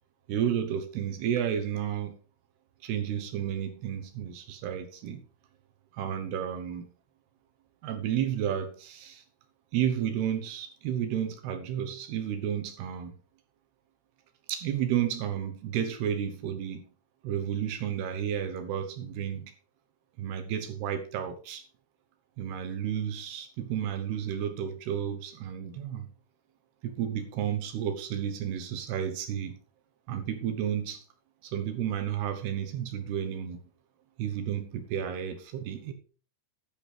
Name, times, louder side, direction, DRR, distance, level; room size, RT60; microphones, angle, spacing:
voice 1, 0.3-2.1 2.8-5.2 5.9-6.9 7.8-9.2 9.7-13.1 14.5-16.8 17.2-19.5 20.2-21.6 22.4-26.1 26.8-29.6 30.1-31.0 31.4-33.6 34.2-35.9, right 9 dB, 70° right, 7 dB, 2.8 m, -32 dB
14.0 x 10.5 x 3.3 m, 0.40 s
omnidirectional pair, 5.2 m